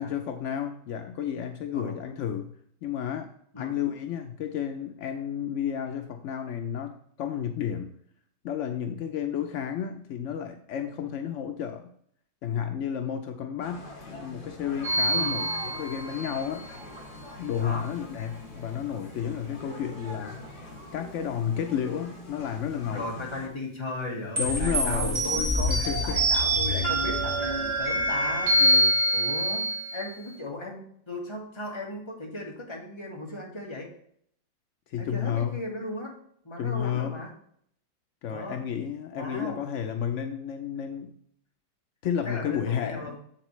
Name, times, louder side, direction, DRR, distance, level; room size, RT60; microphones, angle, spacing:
voice 1, 0.0-2.5 2.8-7.9 8.4-11.9 12.4-16.6 17.4-20.4 20.9-23.0 24.4-25.2 25.7-26.2 28.6-29.0 34.9-35.6 36.6-37.2 38.2-41.1 42.0-43.2, left 9 dB, 80° left, 6 dB, 0.6 m, -32 dB
sound 1, 13.6-23.5, left 1 dB, 60° left, 2.4 m, -44 dB
sound 2, 14.8-16.4 24.4-30.1, right 1 dB, 20° right, 1.9 m, -25 dB
voice 2, 22.9-28.8 29.1-33.9 35.0-36.2 36.4-37.3 38.3-38.6 39.1-39.6 42.2-43.2, left 1 dB, 15° left, -1 dB, 1.6 m, -36 dB
7.3 x 7.2 x 3.1 m, 0.65 s
omnidirectional pair, 2.0 m